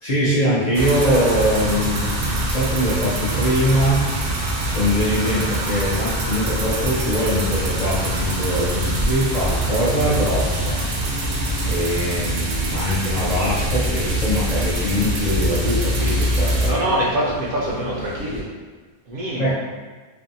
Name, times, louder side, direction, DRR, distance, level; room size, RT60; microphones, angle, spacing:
voice 1, 0.0-2.1 2.4-4.1 4.7-10.8 11.6-16.8 17.2-17.3 19.4-19.5, equal, 50° left, -8 dB, 0.6 m, -22 dB
sound 1, 0.7-16.7, right 1 dB, 85° right, 0.9 m, -24 dB
sound 2, 7.6-18.4, left 2 dB, 75° left, 0.9 m, -34 dB
voice 2, 16.6-18.5 19.1-19.5, right 1 dB, 60° right, -4 dB, 0.6 m, -24 dB
2.6 x 2.2 x 2.6 m, 1.4 s
omnidirectional pair, 1.1 m